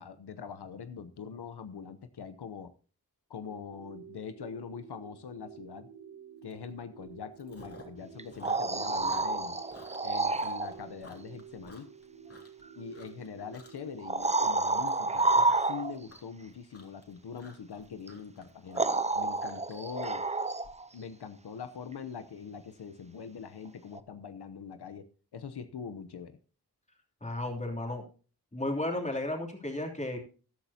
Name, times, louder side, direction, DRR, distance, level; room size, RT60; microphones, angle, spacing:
voice 1, 0.0-2.7 3.3-5.9 6.4-9.6 10.0-11.9 12.8-18.9 19.1-20.3 20.9-25.1 25.3-26.4, left 6 dB, 85° left, 11 dB, 0.9 m, -43 dB
sound 1, 3.4-14.2, right 7 dB, 40° right, 2.9 m, -51 dB
Chewing mastication, 6.5-6.7 7.0-8.0 8.3-12.6 12.9-13.3 13.5-13.9 14.2-20.7, left 2 dB, 35° left, 3.3 m, -53 dB
sound 2, 8.2-10.8 12.6-12.7 14.0-16.2 18.1-18.2 18.7-20.9 24.0-24.1, right 3 dB, 15° right, 0.6 m, -29 dB
voice 2, 27.2-28.1 28.5-30.2, left 1 dB, 20° left, 1 dB, 3.1 m, -33 dB
14.0 x 12.0 x 2.8 m, 0.37 s
wide cardioid pair, 100°, 39 cm